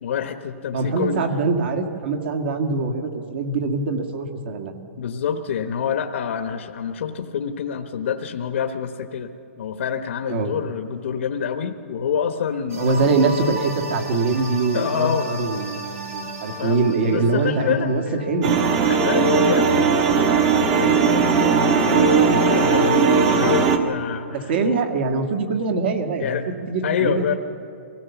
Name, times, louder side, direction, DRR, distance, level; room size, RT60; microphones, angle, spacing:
voice 1, 0.0-1.2 5.0-9.3 9.6-13.1 14.7-15.6 16.6-18.2 18.8-24.8 26.2-27.3, left 7 dB, 60° left, 6 dB, 1.0 m, -27 dB
voice 2, 0.7-4.7 10.3-10.5 12.8-18.6 24.3-26.4 26.7-27.4, right 3 dB, 50° right, 5 dB, 1.8 m, -23 dB
sound 1, 12.7-18.8, right 1 dB, 80° right, 3.2 m, -35 dB
sound 2, 18.4-23.8, right 5 dB, 25° right, 1.2 m, -18 dB
23.5 x 16.5 x 7.1 m, 2.6 s
hypercardioid pair, 170°, 8 cm